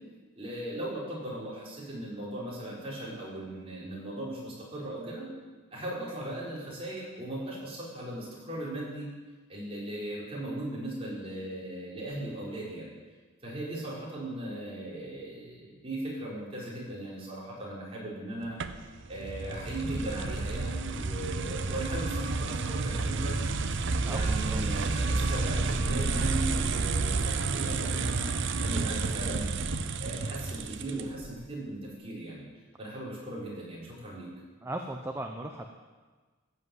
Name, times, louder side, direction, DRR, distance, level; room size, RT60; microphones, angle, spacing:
voice 1, 0.4-5.3 5.7-9.1 9.5-12.9 13.4-18.6 19.1-23.4 24.1-29.5 30.0-32.4 32.8-34.3, right 1 dB, 25° right, -6 dB, 4.8 m, -38 dB
sound 1, 18.6-31.3, right 3 dB, 55° right, 0.7 m, -30 dB
voice 2, 24.0-24.6 34.6-35.7, right 1 dB, 10° right, 3 dB, 0.7 m, -37 dB
14.5 x 8.2 x 8.0 m, 1.4 s
head